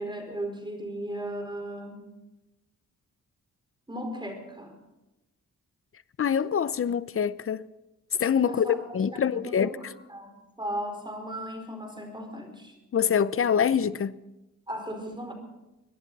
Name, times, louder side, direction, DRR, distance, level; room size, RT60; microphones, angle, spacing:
voice 1, 0.0-2.1 3.9-4.7 8.4-9.0 9.3-12.8 14.7-15.3, right 1 dB, 15° right, 4.6 m, -36 dB
voice 2, 6.2-7.7 8.2-9.7 12.9-14.2, left 7 dB, 45° left, 0.7 m, -25 dB
24.5 x 11.0 x 4.1 m
cardioid pair, 80°, 30 cm